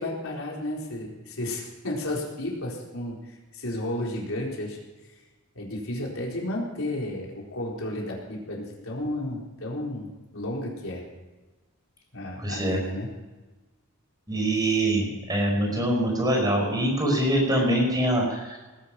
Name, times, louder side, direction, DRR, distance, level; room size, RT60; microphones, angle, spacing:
voice 1, 0.0-4.8 5.5-10.1 10.3-11.0 12.1-13.1, left 1 dB, 70° left, -2 dB, 4.2 m, -32 dB
voice 2, 12.4-12.8 14.3-18.6, right 1 dB, 20° right, -1 dB, 4.9 m, -24 dB
19.5 x 11.0 x 6.0 m, 1.2 s
head